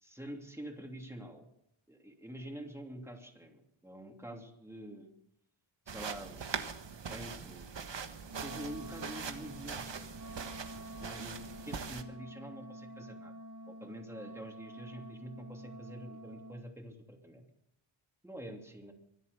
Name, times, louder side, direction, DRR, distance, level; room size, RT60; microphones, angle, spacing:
voice 1, 0.0-1.5 1.9-5.1 5.9-6.5 7.1-7.7 8.3-10.0 11.0-13.3 13.7-17.4 18.2-18.9, right 1 dB, 5° right, 2 dB, 2.9 m, -46 dB
sound 1, 5.9-12.0, right 6 dB, 65° right, 1.5 m, -42 dB
Wind instrument woodwind instrument, 8.3-16.7, equal, 40° right, 1.3 m, -48 dB
24.5 x 8.3 x 6.9 m, 0.78 s
wide cardioid pair, 95°, 48 cm